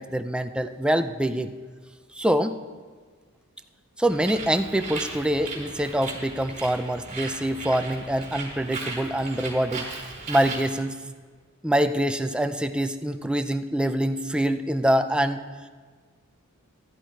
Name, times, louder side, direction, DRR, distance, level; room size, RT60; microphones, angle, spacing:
voice 1, 0.0-1.5 2.2-2.6 4.0-9.9 10.3-11.0 11.6-15.4, right 1 dB, 5° right, 8 dB, 0.5 m, -25 dB
Bird, 4.1-10.7, right 3 dB, 30° right, 4.2 m, -37 dB
14.5 x 11.5 x 4.5 m, 1.5 s
head